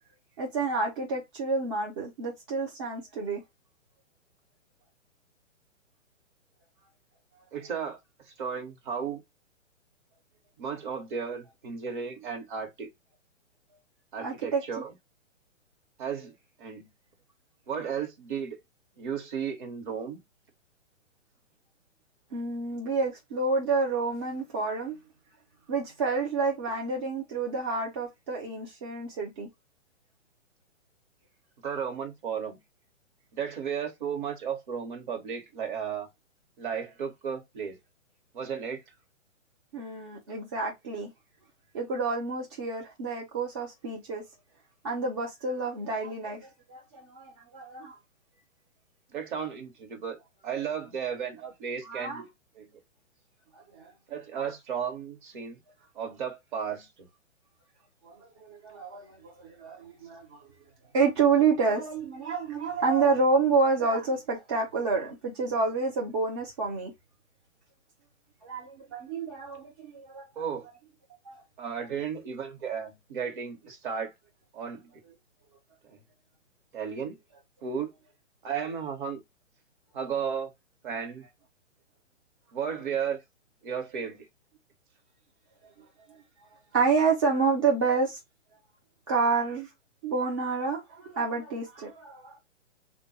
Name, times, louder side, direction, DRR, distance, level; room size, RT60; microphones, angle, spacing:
voice 1, 0.4-3.4 14.2-14.8 22.3-25.0 25.7-29.5 39.7-41.1 41.7-44.2 44.8-48.0 51.8-52.3 53.5-53.9 54.3-54.5 58.0-60.5 60.9-66.9 68.4-70.7 71.2-71.4 71.8-71.9 86.5-88.2 89.1-89.7 90.0-92.4, right 4 dB, 20° right, 0.5 m, -29 dB
voice 2, 7.5-8.0 8.3-9.2 10.6-12.9 14.1-14.9 16.0-16.9 17.7-18.6 19.0-20.2 31.6-32.6 33.3-36.1 36.6-37.8 38.3-38.8 49.1-50.2 50.4-52.3 52.5-52.7 54.1-55.6 55.9-57.1 70.4-70.7 71.6-74.1 74.5-74.9 75.8-76.0 76.7-77.2 77.6-77.9 78.4-79.2 79.9-80.5 80.8-81.3 82.5-83.2 83.6-84.3, right 7 dB, 40° right, 1.0 m, -34 dB
3.5 x 2.2 x 2.8 m
figure-of-eight pair, 130°, 38 cm